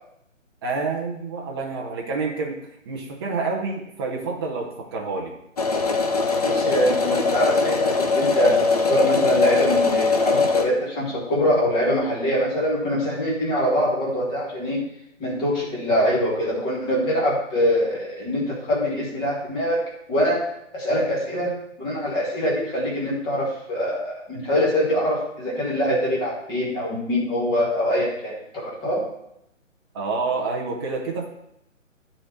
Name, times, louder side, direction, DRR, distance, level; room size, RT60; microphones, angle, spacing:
voice 1, 0.6-2.6 2.9-5.3 29.9-31.3, right 4 dB, 20° right, -1 dB, 0.9 m, -28 dB
sound 1, 5.6-10.7, left 4 dB, 30° left, 0.7 m, -21 dB
voice 2, 6.4-14.8 15.2-19.8 20.1-20.4 20.7-21.5 21.8-29.0, equal, 10° left, -5 dB, 1.9 m, -23 dB
9.6 x 4.4 x 6.4 m, 0.78 s
figure-of-eight pair, 140°, 39 cm